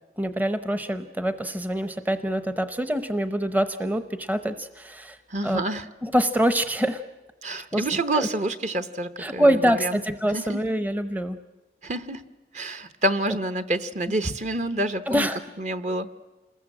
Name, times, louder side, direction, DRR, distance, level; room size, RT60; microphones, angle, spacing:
voice 1, 0.2-5.2 5.4-5.6 6.0-7.0 7.7-8.3 9.2-11.4 15.1-15.4, right 1 dB, 10° right, 10 dB, 0.7 m, -25 dB
voice 2, 5.3-5.9 7.4-10.0 10.3-10.6 11.8-12.2 12.5-15.3 15.6-16.1, right 1 dB, 40° right, 11 dB, 1.0 m, -28 dB
28.0 x 21.0 x 7.7 m, 1.1 s
head